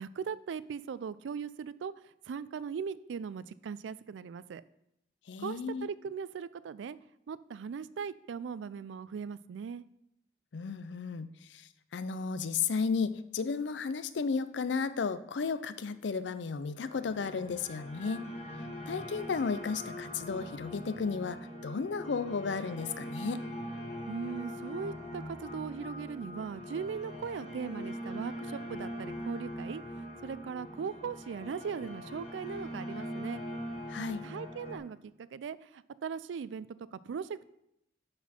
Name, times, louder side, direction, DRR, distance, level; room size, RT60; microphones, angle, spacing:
voice 1, 0.0-1.9 2.3-4.6 5.4-7.0 7.3-9.8 24.1-29.8 30.2-33.4 34.2-37.5, right 6 dB, 85° right, 17 dB, 0.4 m, -39 dB
voice 2, 5.3-5.9 10.5-18.3 18.9-23.4 33.9-34.3, left 5 dB, 70° left, 13 dB, 0.5 m, -34 dB
sound 1, 16.7-34.8, equal, 35° left, 1.6 m, -42 dB
11.5 x 4.3 x 4.3 m, 0.81 s
head